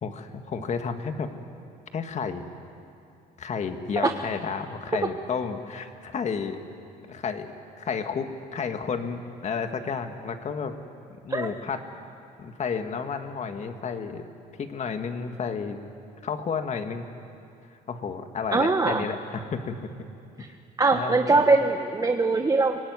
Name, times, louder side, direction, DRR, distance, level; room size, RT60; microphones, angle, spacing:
voice 1, 0.0-1.3 1.9-2.4 3.4-6.6 7.1-10.7 11.1-11.8 12.4-14.3 14.6-15.8 16.2-17.1 17.9-19.9 20.9-21.3, left 6 dB, 45° left, 7 dB, 1.9 m, -31 dB
voice 2, 18.5-19.0 20.8-22.8, right 3 dB, 20° right, 5 dB, 1.1 m, -22 dB
24.5 x 18.5 x 9.6 m, 2.5 s
cardioid pair, 110°, 17 cm